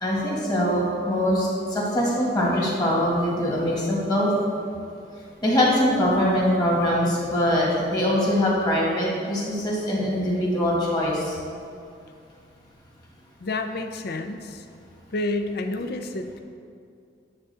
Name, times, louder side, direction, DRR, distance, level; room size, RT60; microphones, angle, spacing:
voice 1, 0.0-4.3 5.4-11.4, equal, 20° left, -5 dB, 1.9 m, -23 dB
voice 2, 13.4-14.6 15.1-16.4, left 2 dB, 55° left, 6 dB, 0.5 m, -29 dB
9.7 x 3.7 x 6.8 m, 2.4 s
head